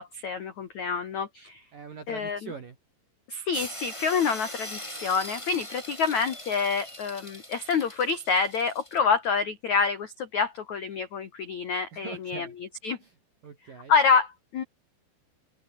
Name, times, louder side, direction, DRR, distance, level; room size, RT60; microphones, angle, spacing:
voice 1, 0.0-1.6 2.1-2.4 3.3-12.5 12.8-13.0 13.9-14.6, left 5 dB, 70° left, 1.7 m, -27 dB
voice 2, 1.7-2.8 11.9-12.5 13.0-13.1 13.4-13.9, right 6 dB, 45° right, 4.2 m, -42 dB
sound 1, 3.5-9.0, left 1 dB, 5° left, 5.4 m, -41 dB
open air
omnidirectional pair, 5.9 m